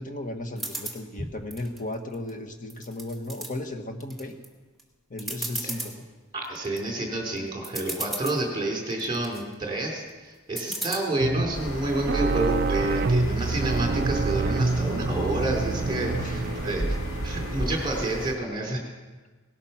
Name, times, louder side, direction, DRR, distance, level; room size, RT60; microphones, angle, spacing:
voice 1, 0.0-4.4 5.1-6.0 16.1-16.7, left 1 dB, 40° left, 5 dB, 1.7 m, -35 dB
sound 1, 0.6-1.0 1.5-2.3 2.7-3.5 4.0-4.5 4.8-4.9 5.2-5.9 6.4-6.8 7.4-7.5 7.6-8.4 8.9-9.4 10.6-11.0, right 2 dB, ahead, 2.3 m, -34 dB
voice 2, 6.3-16.8 17.2-18.8, right 2 dB, 25° right, 0 dB, 3.8 m, -29 dB
sound 2, 11.2-18.2, right 3 dB, 45° right, 0.5 m, -28 dB
sound 3, 11.5-18.3, equal, 75° left, 2.1 m, -35 dB
18.5 x 13.0 x 5.9 m, 1.3 s
head